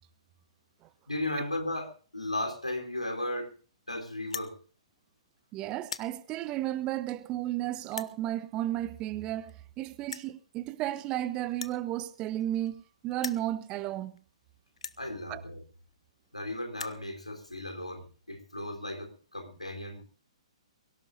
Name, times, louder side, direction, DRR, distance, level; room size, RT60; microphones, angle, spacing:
voice 1, 1.1-3.6 3.9-4.6 15.0-15.6 16.3-20.0, left 1 dB, 85° left, 3.7 m, -35 dB
sound 1, 4.3-4.5 5.2-5.4 5.7-6.1 6.9-7.0 7.9-8.1 9.2-9.3 9.5-9.6 10.1-10.3 11.5-12.8 13.1-13.5 14.2-14.3 14.8-15.0 15.9-16.0 16.2-16.3 16.6-17.0, left 5 dB, 65° left, 0.9 m, -40 dB
voice 2, 5.5-14.2 15.3-15.4, right 13 dB, 25° right, 1.0 m, -33 dB
23.5 x 16.5 x 2.6 m
figure-of-eight pair, 120°, 3 cm